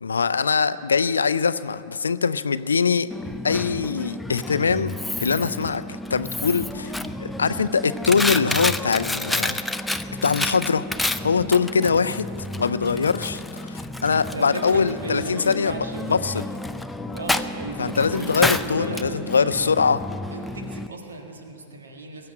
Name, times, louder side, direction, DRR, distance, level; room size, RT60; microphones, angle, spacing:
voice 1, 0.0-3.1 3.4-4.9 5.2-5.8 6.1-6.9 7.2-9.6 10.2-10.9 11.2-12.3 12.6-16.4 17.8-20.0, left 5 dB, 75° left, 15 dB, 0.4 m, -22 dB
Coin (dropping), 3.1-20.9, left 1 dB, 5° left, 0.5 m, -30 dB
voice 2, 14.3-16.5 17.1-19.9 20.3-22.3, right 2 dB, 70° right, 3 dB, 1.7 m, -35 dB
21.0 x 7.6 x 8.8 m, 2.6 s
figure-of-eight pair, 90°, 0 cm